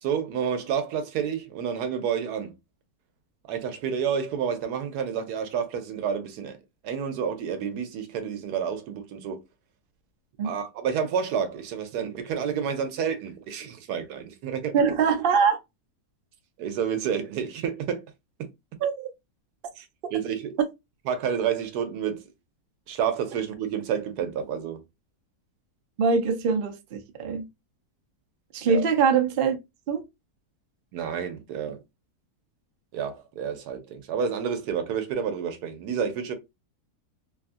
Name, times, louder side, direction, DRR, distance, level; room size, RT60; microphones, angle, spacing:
voice 1, 0.0-2.5 3.4-6.6 6.8-9.4 10.4-14.7 16.6-18.0 19.8-20.6 21.1-22.3 22.9-24.8 28.7-28.8 30.9-31.8 32.9-36.3, right 7 dB, 80° right, 1.2 m, -29 dB
voice 2, 14.7-15.6 18.8-19.1 26.0-27.5 28.5-29.6 29.9-30.0, right 5 dB, 65° right, 0.5 m, -23 dB
3.0 x 2.4 x 2.4 m
omnidirectional pair, 1.7 m